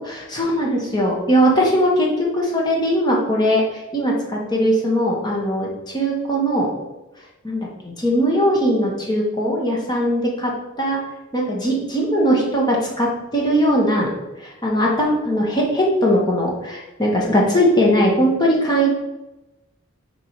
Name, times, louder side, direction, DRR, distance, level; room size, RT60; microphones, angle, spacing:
voice 1, 0.0-3.6 3.9-6.7 7.4-10.5 10.8-11.0 11.3-14.1 14.4-18.9, equal, 20° left, -2 dB, 1.3 m, -19 dB
5.8 x 4.2 x 4.5 m, 0.99 s
head